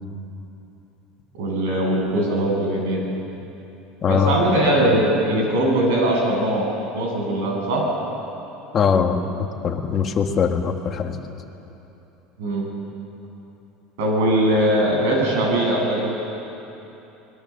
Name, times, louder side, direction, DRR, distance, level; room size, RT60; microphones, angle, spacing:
voice 1, 1.4-3.1 4.1-6.7 6.9-7.8 12.4-12.7 14.0-16.1, right 1 dB, 80° right, -1 dB, 7.7 m, -20 dB
voice 2, 4.0-4.4 8.7-9.2 9.6-11.2, left 7 dB, 25° left, 4 dB, 1.5 m, -21 dB
24.0 x 21.0 x 7.3 m, 3.0 s
cardioid pair, 175°, 0 cm